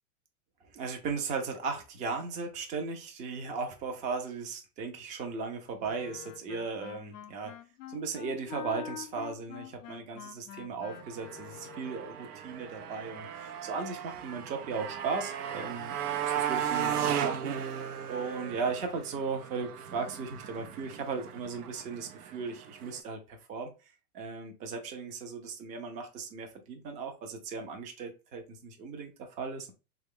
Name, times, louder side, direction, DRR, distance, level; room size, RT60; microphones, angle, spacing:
voice 1, 0.7-7.6 7.9-23.7 24.1-29.7, right 5 dB, 20° right, 4 dB, 0.4 m, -37 dB
Wind instrument woodwind instrument, 5.8-12.2, left 11 dB, 90° left, 0.6 m, -45 dB
Motorcycle, 10.9-23.0, right 9 dB, 80° right, 0.7 m, -36 dB
3.2 x 2.3 x 3.5 m, 0.30 s
hypercardioid pair, 130°, 45 cm